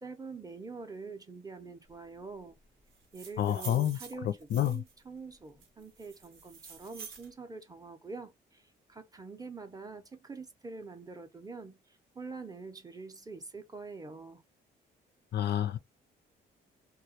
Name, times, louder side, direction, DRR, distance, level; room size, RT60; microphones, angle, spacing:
voice 1, 0.0-2.6 3.1-8.6 8.9-11.8 12.2-14.4, right 4 dB, 20° right, 0.5 m, -45 dB
sound 1, 2.9-5.0 5.6-7.3, right 6 dB, 85° right, 0.8 m, -48 dB
voice 2, 3.4-4.0 4.2-4.8 15.3-15.8, left 11 dB, 55° left, 0.4 m, -29 dB
2.2 x 2.1 x 2.8 m
cardioid pair, 90°, 20 cm